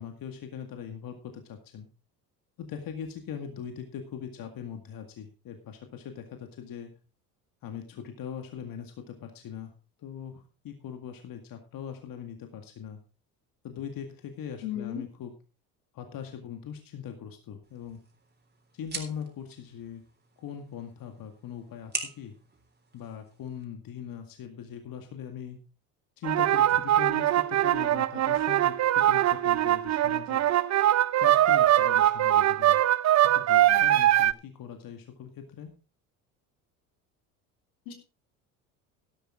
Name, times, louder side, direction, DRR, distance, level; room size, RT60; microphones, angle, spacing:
voice 1, 0.0-1.9 2.6-6.9 7.6-9.7 10.0-13.0 13.6-15.3 15.9-18.0 18.7-20.0 20.4-22.3 22.9-25.6 26.2-30.4 31.2-32.8 33.2-35.7, left 8 dB, 50° left, 6 dB, 2.1 m, -41 dB
voice 2, 14.6-15.0 33.7-33.9 37.9-38.0, left 10 dB, 75° left, 5 dB, 3.0 m, -35 dB
sound 1, 17.6-23.6, right 3 dB, 20° right, 3.6 m, -43 dB
sound 2, 26.2-34.3, right 12 dB, 40° right, 0.7 m, -22 dB
12.0 x 11.5 x 3.7 m, 0.32 s
hypercardioid pair, 70°, 44 cm